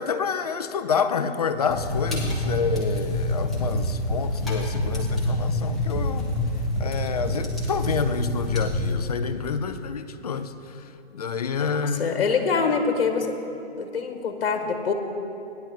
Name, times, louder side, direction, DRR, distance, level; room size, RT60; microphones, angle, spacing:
voice 1, 0.0-6.3 6.8-12.1, left 6 dB, 35° left, 10 dB, 0.5 m, -28 dB
sound 1, 1.7-8.9, left 1 dB, ahead, 1.3 m, -26 dB
voice 2, 11.8-13.3 13.8-14.9, left 5 dB, 55° left, 5 dB, 1.6 m, -24 dB
16.5 x 10.5 x 4.4 m, 2.9 s
hypercardioid pair, 160°, 33 cm